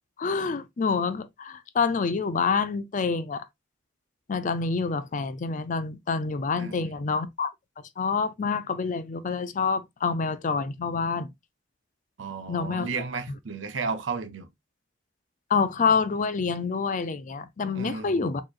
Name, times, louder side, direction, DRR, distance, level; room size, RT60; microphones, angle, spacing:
voice 1, 0.2-3.4 4.3-7.5 8.0-11.3 12.5-12.9 15.5-18.4, left 5 dB, 45° left, 0.4 m, -27 dB
voice 2, 6.6-6.9 12.2-14.5 17.7-18.3, right 4 dB, 90° right, 0.7 m, -33 dB
4.5 x 3.0 x 2.5 m
head